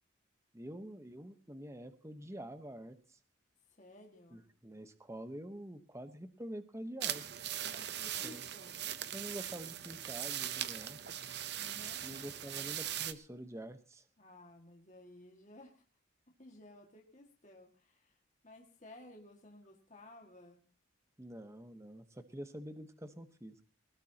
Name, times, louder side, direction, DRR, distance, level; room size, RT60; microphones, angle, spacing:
voice 1, 0.5-3.2 4.3-7.2 8.2-8.4 9.1-11.0 12.0-14.0 21.2-23.5, right 1 dB, 15° right, 9 dB, 1.1 m, -47 dB
voice 2, 3.7-4.4 7.6-8.8 11.6-12.2 14.2-15.8 16.4-18.2 18.4-20.6, left 1 dB, 35° left, 1 dB, 2.1 m, -56 dB
sound 1, 7.0-13.1, right 11 dB, 55° right, 0.8 m, -40 dB
21.0 x 19.0 x 3.0 m, 0.35 s
head